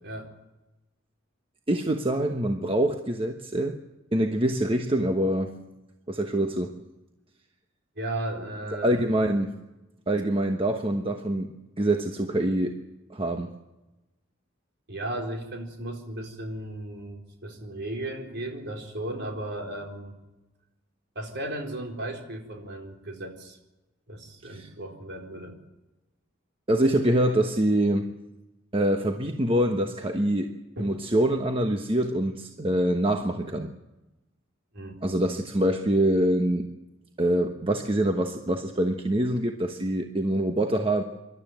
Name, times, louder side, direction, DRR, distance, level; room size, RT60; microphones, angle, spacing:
voice 1, 0.0-0.3 8.0-9.1 14.9-20.1 21.1-23.6 24.1-25.6 30.8-31.0 34.7-35.0, right 1 dB, 55° right, 2 dB, 4.2 m, -35 dB
voice 2, 1.7-3.7 4.1-5.6 6.1-6.7 8.8-9.6 10.1-12.8 13.1-13.5 24.4-24.7 26.7-28.1 28.7-30.5 30.8-33.7 35.0-36.7 37.2-41.0, right 1 dB, 25° right, 4 dB, 1.1 m, -25 dB
25.5 x 12.5 x 9.1 m, 1.0 s
head